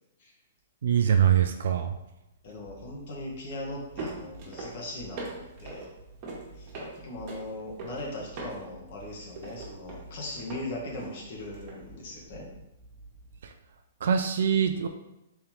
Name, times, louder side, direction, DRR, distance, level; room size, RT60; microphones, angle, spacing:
voice 1, 0.8-1.9 13.4-13.5 14.0-14.9, right 8 dB, 70° right, 6 dB, 0.3 m, -23 dB
voice 2, 2.4-5.8 6.6-6.7 7.0-12.5, left 1 dB, 55° left, -2 dB, 1.2 m, -39 dB
sound 1, 2.5-13.4, right 2 dB, 40° right, 1.2 m, -43 dB
3.6 x 3.4 x 3.0 m, 0.92 s
hypercardioid pair, 135°, 0 cm